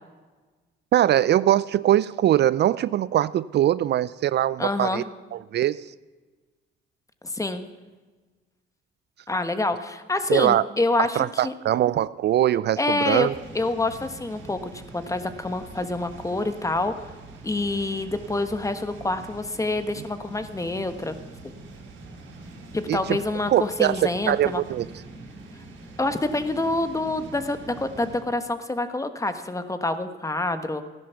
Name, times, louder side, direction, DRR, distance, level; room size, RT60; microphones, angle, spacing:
voice 1, 0.9-5.0 5.3-5.8 10.3-10.6 11.0-13.3 22.9-23.2 23.5-24.9, right 12 dB, 60° right, 18 dB, 0.4 m, -22 dB
voice 2, 4.6-5.1 7.2-7.6 9.3-11.5 12.8-13.3 13.5-16.9 17.4-21.1 21.4-21.5 22.7-24.6 26.0-30.8, left 2 dB, 15° left, 9 dB, 1.2 m, -27 dB
sound 1, 13.1-28.2, right 2 dB, 90° right, 3.7 m, -44 dB
15.0 x 10.5 x 7.0 m, 1.3 s
cardioid pair, 90°, 20 cm